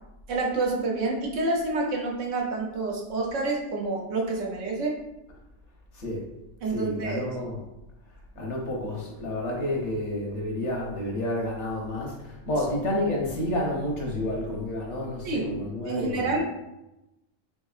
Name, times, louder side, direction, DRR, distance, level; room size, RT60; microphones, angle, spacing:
voice 1, 0.3-4.9 6.6-7.2 15.2-15.5 15.9-16.4, right 3 dB, 90° right, -1 dB, 1.1 m, -28 dB
voice 2, 6.7-7.6 8.4-16.3, left 1 dB, 70° left, -1 dB, 1.2 m, -30 dB
3.6 x 3.4 x 2.4 m, 0.94 s
omnidirectional pair, 1.2 m